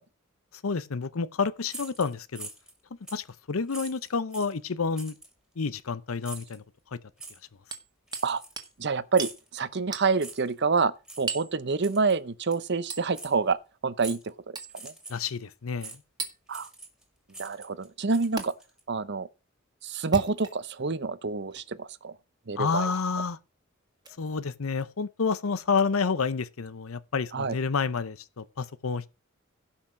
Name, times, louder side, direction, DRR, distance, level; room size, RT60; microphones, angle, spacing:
voice 1, 0.6-2.5 3.1-5.1 5.6-6.6 15.1-16.0 22.6-23.4 24.2-29.1, left 5 dB, 85° left, 0.7 m, -29 dB
sound 1, 1.7-2.8 3.1-3.3 3.7-4.6 5.0-5.3 6.2-6.6 7.2-7.4 8.1-8.8 9.1-9.5 10.2-10.5 11.0-11.3 11.8-12.2 12.5-12.6 13.1-13.3 14.0-14.3 14.7-15.3 15.8-16.0 16.5-17.0 17.3-18.8, right 3 dB, 5° right, 2.6 m, -43 dB
Hammer, 7.7-8.3 8.6-8.7 9.2-9.4 9.9-10.1 11.3-11.5 12.9-13.1 14.6-14.8 16.2-16.4 18.4-18.5 20.0-20.8 21.5-21.7 22.9-23.1 24.0-24.2 25.7-25.8, right 4 dB, 20° right, 1.7 m, -37 dB
voice 2, 8.8-10.9 11.2-13.6 13.8-14.2 14.8-14.9 16.5-16.7 17.4-18.5 18.9-19.3 19.8-22.1 22.5-22.9 27.3-27.5, right 4 dB, 55° right, 0.8 m, -27 dB
16.5 x 5.8 x 6.2 m
head